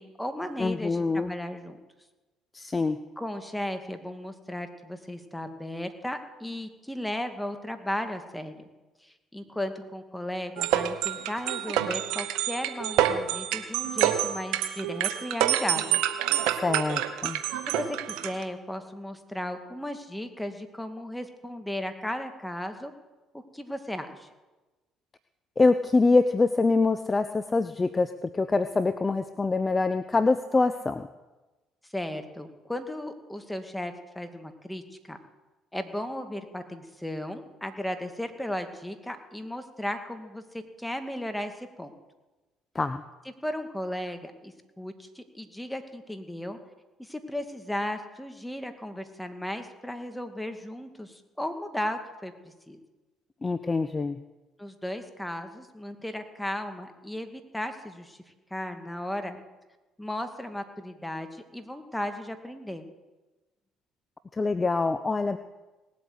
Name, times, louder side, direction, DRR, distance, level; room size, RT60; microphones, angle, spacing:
voice 1, 0.0-1.8 3.2-8.6 9.0-16.0 17.7-22.9 23.3-24.3 31.9-34.8 35.1-35.2 35.7-41.9 43.4-46.6 47.0-52.8 54.6-58.2 58.5-59.4 60.0-62.8, left 1 dB, 5° left, 7 dB, 2.2 m, -35 dB
voice 2, 0.6-1.3 2.5-3.0 16.6-17.4 25.6-31.1 42.7-43.0 53.4-54.2 64.3-65.4, left 3 dB, 25° left, 11 dB, 0.7 m, -25 dB
sound 1, 10.6-18.4, right 11 dB, 75° right, 1.0 m, -27 dB
19.0 x 8.3 x 8.1 m, 1.1 s
hypercardioid pair, 55°, 0 cm